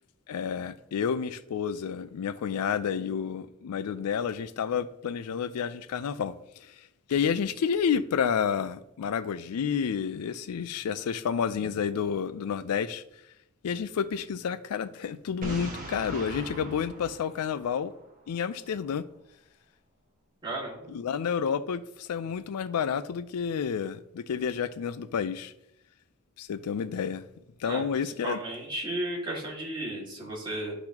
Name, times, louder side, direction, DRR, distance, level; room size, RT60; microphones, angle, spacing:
voice 1, 0.3-6.3 6.6-6.7 7.1-13.0 13.6-17.9 18.3-19.0 20.9-25.5 26.4-27.2 27.6-28.4, left 7 dB, 90° left, 0.4 m, -30 dB
Boom, 15.4-18.3, right 1 dB, 35° right, 1.4 m, -40 dB
voice 2, 20.4-20.9 27.6-30.7, right 1 dB, 20° right, 2.1 m, -34 dB
11.5 x 4.0 x 2.9 m
head